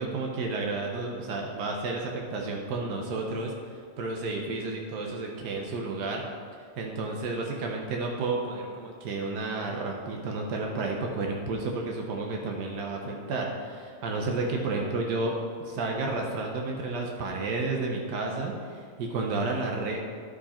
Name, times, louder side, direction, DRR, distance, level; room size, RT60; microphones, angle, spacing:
voice 1, 0.0-6.2 6.6-15.3 15.6-20.0, right 3 dB, 90° right, 0 dB, 1.4 m, -31 dB
11.5 x 4.9 x 4.2 m, 2.1 s
omnidirectional pair, 1.7 m